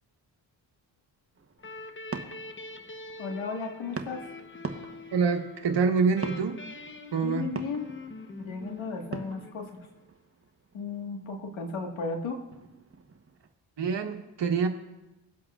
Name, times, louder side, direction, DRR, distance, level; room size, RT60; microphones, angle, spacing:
sound 1, 1.4-13.5, right 5 dB, 30° right, 1.1 m, -44 dB
sound 2, 1.6-10.1, left 3 dB, 25° left, 1.0 m, -44 dB
voice 1, 3.2-4.3 7.2-7.9 8.4-9.8 10.7-12.4, left 4 dB, 75° left, 3 dB, 1.8 m, -35 dB
voice 2, 5.1-6.6 7.1-7.5 13.8-14.7, right 5 dB, 60° right, 5 dB, 1.4 m, -26 dB
22.0 x 7.8 x 2.5 m, 1.0 s
supercardioid pair, 50°, 48 cm